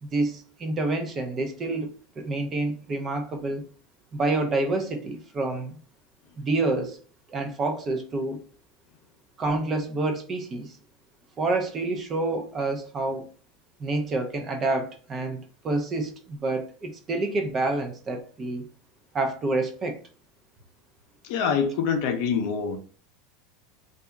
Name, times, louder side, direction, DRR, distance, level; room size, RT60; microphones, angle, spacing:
voice 1, 0.0-3.7 4.1-5.8 6.4-7.0 7.3-8.4 9.4-10.8 11.4-13.3 13.8-15.4 15.6-18.6 19.1-20.0, right 2 dB, 30° right, 0.5 m, -28 dB
voice 2, 21.2-22.8, left 6 dB, 60° left, 0.5 m, -25 dB
2.7 x 2.3 x 2.2 m
supercardioid pair, 135°, 0 cm